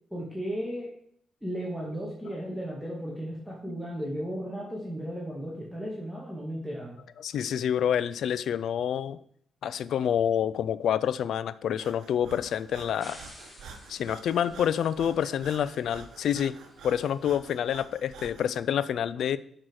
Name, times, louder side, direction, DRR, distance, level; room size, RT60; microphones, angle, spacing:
voice 1, 0.1-0.9 1.4-7.0, equal, ahead, -4 dB, 2.2 m, -35 dB
voice 2, 7.2-9.2 9.6-13.2 13.9-16.6 16.8-19.4, left 9 dB, 70° left, 16 dB, 0.5 m, -28 dB
Breathing, 11.8-18.5, right 5 dB, 75° right, 1.2 m, -48 dB
sound 1, 13.0-18.1, left 1 dB, 20° left, 2.1 m, -53 dB
11.0 x 5.9 x 4.8 m, 0.67 s
cardioid pair, 100°, 0 cm